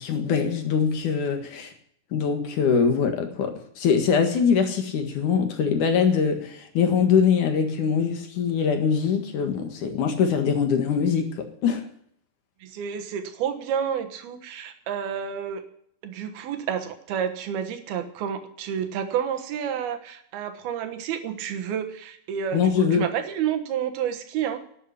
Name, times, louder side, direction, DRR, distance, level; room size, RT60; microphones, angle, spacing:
voice 1, 0.0-1.7 2.1-11.8 22.5-23.0, left 6 dB, 60° left, 5 dB, 2.9 m, -23 dB
voice 2, 12.6-15.6 16.0-24.6, right 8 dB, 80° right, 7 dB, 3.2 m, -30 dB
12.0 x 8.7 x 9.9 m, 0.66 s
omnidirectional pair, 4.4 m